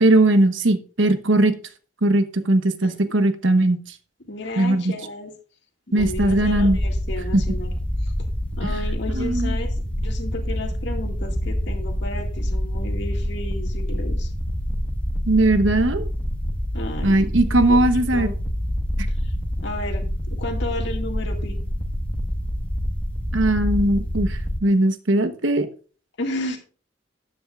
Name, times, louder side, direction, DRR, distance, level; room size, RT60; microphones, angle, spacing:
voice 1, 0.0-1.5 2.0-3.8 4.6-4.9 5.9-6.8 7.3-7.4 8.6-8.7 9.1-9.5 15.3-16.1 17.0-18.3 23.3-25.7, right 1 dB, 75° right, 10 dB, 1.0 m, -19 dB
voice 2, 4.3-5.3 5.9-7.8 8.0-8.1 8.5-14.3 16.7-17.2 17.7-17.8 18.1-18.3 19.1-19.3 19.6-21.6 26.2-26.6, left 1 dB, 65° left, 3 dB, 2.0 m, -33 dB
sound 1, 6.0-24.6, equal, 5° left, 1.3 m, -26 dB
13.5 x 9.9 x 2.4 m, 0.38 s
head